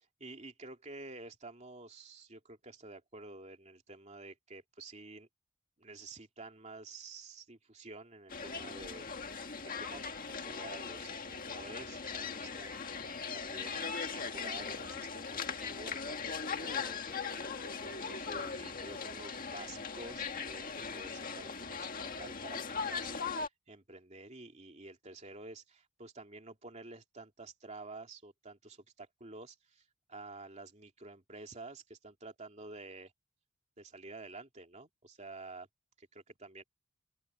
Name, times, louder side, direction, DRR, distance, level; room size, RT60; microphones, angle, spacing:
voice 1, 0.2-5.3 5.8-10.0 10.4-12.8 13.3-33.1 33.8-35.7 36.0-36.6, right 3 dB, 30° right, 2.8 m, -50 dB
sound 1, 8.3-23.5, left 5 dB, 40° left, 1.9 m, -39 dB
open air
head